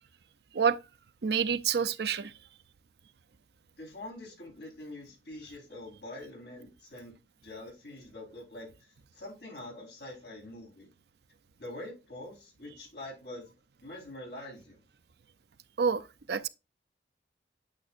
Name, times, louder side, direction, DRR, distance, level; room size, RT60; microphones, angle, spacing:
voice 1, 1.2-2.3 15.8-16.0 16.3-16.5, right 6 dB, 65° right, 0.5 m, -27 dB
voice 2, 3.8-7.1 7.4-8.7 9.1-10.9 11.6-13.4 13.8-14.8, left 1 dB, 65° left, 4.3 m, -44 dB
9.0 x 6.1 x 2.5 m
head